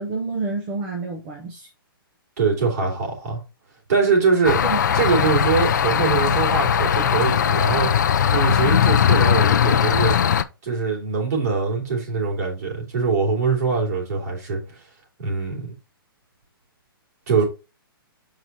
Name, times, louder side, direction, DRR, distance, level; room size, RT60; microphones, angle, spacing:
voice 1, 0.0-1.7 4.6-4.8, right 3 dB, 15° right, 0.6 m, -28 dB
voice 2, 2.4-3.4 3.9-4.6 4.9-7.9 8.3-10.1 10.6-14.8 15.2-15.7 17.3-17.4, right 5 dB, 45° right, 3.1 m, -23 dB
Birds Chirping at Night, 4.4-10.4, left 8 dB, 50° left, 0.4 m, -19 dB
7.3 x 4.7 x 2.7 m
hypercardioid pair, 175°, 12 cm